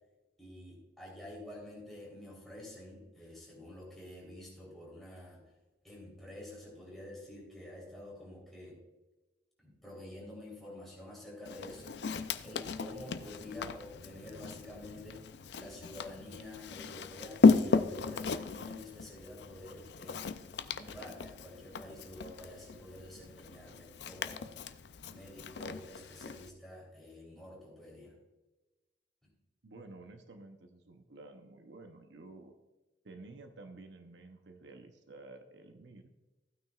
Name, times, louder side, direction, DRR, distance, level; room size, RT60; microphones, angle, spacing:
voice 1, 0.4-5.4 5.8-8.8 9.6-12.1 12.4-15.2 15.5-20.3 20.7-24.5 25.0-28.1, left 1 dB, ahead, -5 dB, 3.5 m, -48 dB
Walk footsteps, 11.4-26.5, left 4 dB, 70° left, 0.5 m, -34 dB
voice 2, 29.6-32.5 33.0-36.1, right 2 dB, 75° right, 6 dB, 0.8 m, -52 dB
15.0 x 9.1 x 2.4 m, 1.1 s
head